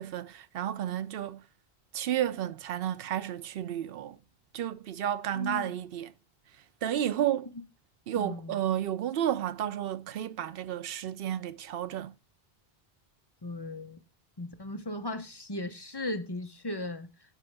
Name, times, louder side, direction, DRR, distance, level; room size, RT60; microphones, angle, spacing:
voice 1, 0.0-1.4 1.9-4.2 4.5-6.1 6.8-7.5 8.1-12.1, right 11 dB, 65° right, 0.8 m, -32 dB
voice 2, 5.3-5.7 8.2-8.6 13.4-14.0 14.4-17.1, left 1 dB, 25° left, 0.7 m, -37 dB
9.1 x 4.9 x 3.3 m
omnidirectional pair, 1.1 m